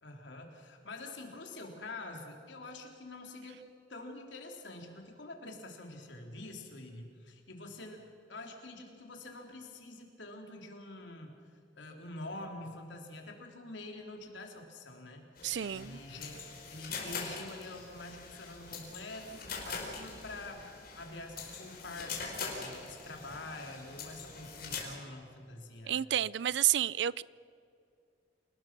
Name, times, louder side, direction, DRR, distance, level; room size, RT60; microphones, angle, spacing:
voice 1, 0.0-8.0 8.3-11.4 11.8-15.2 15.7-20.7 21.0-22.3 22.5-26.0, left 2 dB, 85° left, 3.4 m, -46 dB
sound 1, 15.4-24.8, left 5 dB, 55° left, 4.8 m, -43 dB
voice 2, 15.4-16.0 25.8-27.2, right 11 dB, 70° right, 0.4 m, -30 dB
28.5 x 19.5 x 6.0 m
head